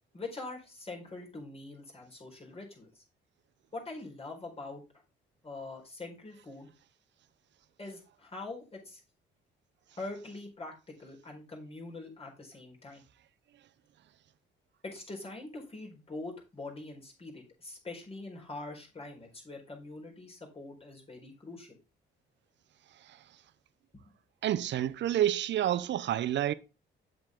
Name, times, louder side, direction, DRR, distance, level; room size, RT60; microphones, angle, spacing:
voice 1, 0.1-3.0 3.7-4.8 5.4-6.7 7.8-9.0 10.0-13.0 14.8-21.8 24.0-24.1, left 2 dB, 30° left, 4.3 m, -44 dB
voice 2, 24.4-26.5, right 12 dB, 65° right, 0.7 m, -28 dB
7.7 x 7.3 x 3.6 m
cardioid pair, 90°, 20 cm